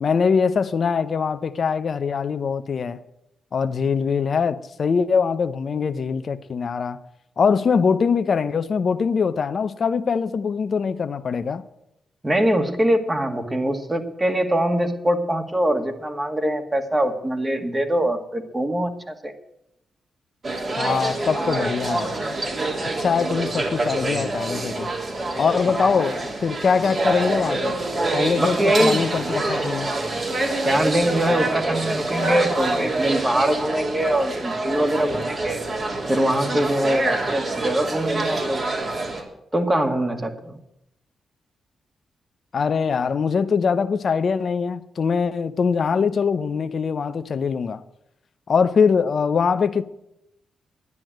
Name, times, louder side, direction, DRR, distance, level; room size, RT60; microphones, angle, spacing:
voice 1, 0.0-3.0 3.5-7.0 7.4-11.6 20.8-22.1 22.8-24.9 25.4-27.8 28.1-29.9 42.5-47.8 48.5-49.8, left 5 dB, 55° left, 0.7 m, -22 dB
voice 2, 12.2-19.3 25.7-26.1 28.4-29.0 30.7-35.6 36.1-38.6 39.5-40.6, right 1 dB, 20° right, 1.9 m, -23 dB
sound 1, 20.4-39.2, right 2 dB, 45° right, 3.2 m, -26 dB
11.0 x 9.8 x 7.6 m
cardioid pair, 65°, 0 cm